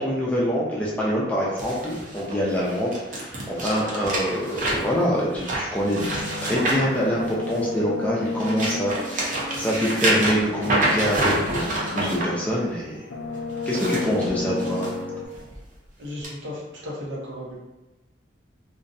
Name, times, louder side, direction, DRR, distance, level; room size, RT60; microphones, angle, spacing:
voice 1, 0.0-6.0 6.4-13.0 13.7-14.9, equal, 10° left, -6 dB, 0.3 m, -25 dB
sound 1, 1.6-7.7 8.2-12.2 13.5-14.9 15.3-15.6 16.2-16.3, right 1 dB, 45° right, 0.6 m, -27 dB
sound 2, 6.0-12.7 13.0-15.3, left 3 dB, 80° left, 0.3 m, -33 dB
voice 2, 14.5-14.8 16.0-17.6, left 1 dB, 90° right, -4 dB, 0.7 m, -35 dB
2.5 x 2.0 x 2.5 m, 1.1 s
head